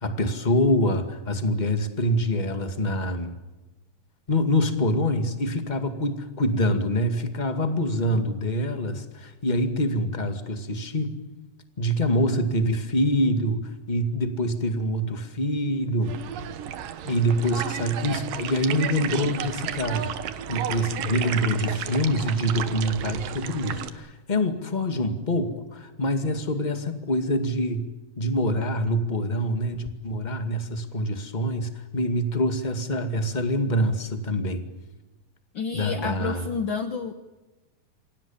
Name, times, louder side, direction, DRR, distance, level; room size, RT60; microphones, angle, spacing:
voice 1, 0.0-3.3 4.3-11.1 11.8-16.2 17.0-20.1 20.5-27.9 28.2-34.6 35.7-36.4, equal, 15° left, 7 dB, 1.6 m, -25 dB
sound 1, 16.0-23.9, right 10 dB, 75° right, 2.9 m, -32 dB
voice 2, 35.5-37.1, left 5 dB, 65° left, 8 dB, 1.2 m, -30 dB
28.0 x 25.5 x 7.3 m, 1.1 s
omnidirectional pair, 4.0 m